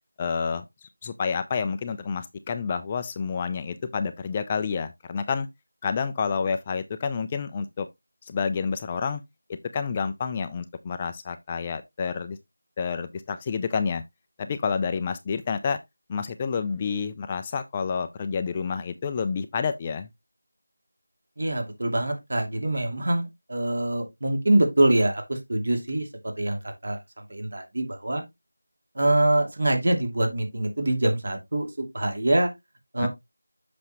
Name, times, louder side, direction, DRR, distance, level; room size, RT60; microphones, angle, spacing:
voice 1, 0.2-5.5 5.8-7.9 8.2-9.2 9.7-12.4 12.8-14.0 14.4-15.8 16.1-20.1 33.0-33.1, left 5 dB, 20° left, 0.4 m, -29 dB
voice 2, 21.4-28.2 28.9-32.5 32.9-33.1, right 1 dB, 55° right, 2.7 m, -25 dB
7.8 x 6.0 x 3.0 m
figure-of-eight pair, 170°, 0 cm